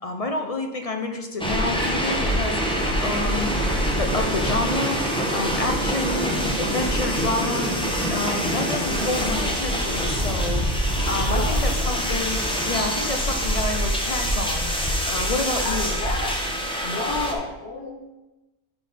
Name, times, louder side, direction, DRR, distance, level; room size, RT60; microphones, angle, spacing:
voice 1, 0.0-2.6 3.0-3.5 3.9-5.0 5.3-7.8 8.1-12.4 12.6-14.8 15.1-16.0, left 2 dB, 40° left, 4 dB, 0.6 m, -29 dB
sound 1, 1.4-17.3, equal, 5° left, 0.9 m, -25 dB
voice 2, 11.2-12.0 15.6-16.4 16.8-17.9, left 2 dB, 60° left, -2 dB, 1.7 m, -31 dB
11.5 x 4.2 x 4.1 m, 1.0 s
omnidirectional pair, 1.2 m